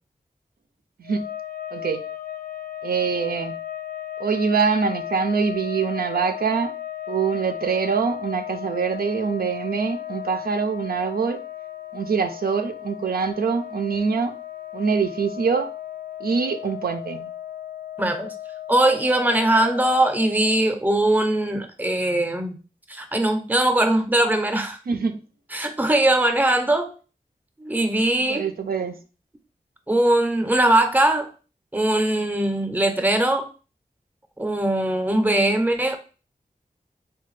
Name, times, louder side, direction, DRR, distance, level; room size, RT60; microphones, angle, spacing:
sound 1, 1.0-20.7, left 12 dB, 75° left, 0.4 m, -35 dB
voice 1, 1.7-2.0 2.8-3.6 4.2-6.7 7.1-11.4 11.9-14.3 14.7-15.7 16.2-17.3 24.9-25.2 28.3-29.0, right 5 dB, 80° right, 6 dB, 0.4 m, -24 dB
voice 2, 18.0-18.3 18.7-22.6 22.9-24.8 25.5-26.9 27.6-28.4 29.9-31.3 31.7-33.5 34.4-36.0, right 1 dB, 10° right, 6 dB, 0.6 m, -21 dB
3.3 x 2.3 x 3.1 m, 0.35 s
wide cardioid pair, 65°, 15 cm